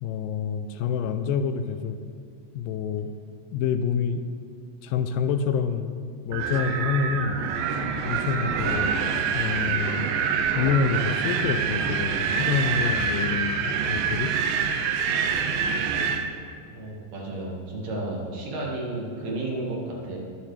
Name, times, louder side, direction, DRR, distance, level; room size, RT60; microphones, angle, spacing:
voice 1, 0.0-2.0 2.6-3.1 3.5-4.2 4.8-6.0 6.2-7.4 8.1-9.0 9.3-10.1 10.5-14.3, left 6 dB, 80° left, 9 dB, 2.2 m, -27 dB
Wind, 6.3-16.3, right 6 dB, 85° right, 2.4 m, -26 dB
voice 2, 16.7-20.2, right 2 dB, 60° right, -3 dB, 2.8 m, -32 dB
20.0 x 7.1 x 3.3 m, 2.3 s
omnidirectional pair, 3.9 m